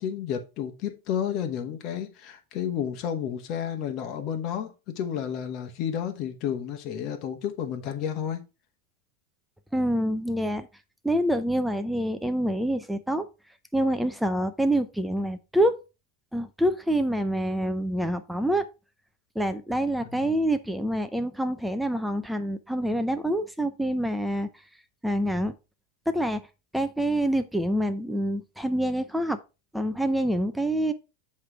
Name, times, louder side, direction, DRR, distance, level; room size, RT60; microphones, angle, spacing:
voice 1, 0.0-8.5 20.1-20.2, left 9 dB, 40° left, 1.1 m, -31 dB
voice 2, 9.7-10.7 11.0-13.3 13.7-15.7 16.3-18.6 19.4-24.5 25.0-25.5 26.1-26.4 26.7-29.4 29.7-30.9, right 1 dB, ahead, 0.5 m, -26 dB
7.9 x 3.2 x 4.8 m
supercardioid pair, 150°, 0 cm